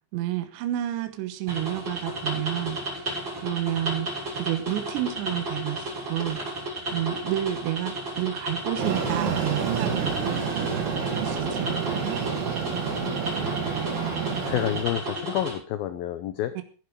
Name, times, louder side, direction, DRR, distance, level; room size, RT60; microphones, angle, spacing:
voice 1, 0.1-4.1 4.4-10.2 11.1-12.2 16.6-16.7, right 13 dB, 75° right, 8 dB, 3.4 m, -30 dB
sound 1, 1.5-15.5, right 1 dB, 25° right, 7.5 m, -33 dB
Train, 8.8-14.8, right 6 dB, 60° right, 4.8 m, -29 dB
voice 2, 13.9-16.5, left 12 dB, 80° left, 11 dB, 2.1 m, -30 dB
15.5 x 11.0 x 4.8 m, 0.38 s
omnidirectional pair, 5.4 m